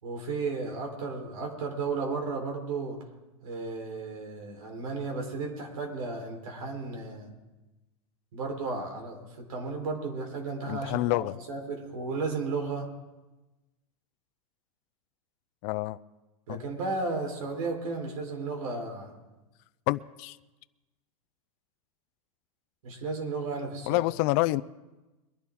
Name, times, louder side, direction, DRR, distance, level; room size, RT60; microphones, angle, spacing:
voice 1, 0.0-3.0 3.4-7.3 8.3-12.9 16.5-19.1 22.8-24.0, right 3 dB, 75° right, 3.9 m, -34 dB
voice 2, 10.7-11.3 15.6-16.0 16.5-16.6 19.9-20.4 23.9-24.6, left 19 dB, 45° left, 0.5 m, -27 dB
22.5 x 11.0 x 3.7 m
hypercardioid pair, 120°, 18 cm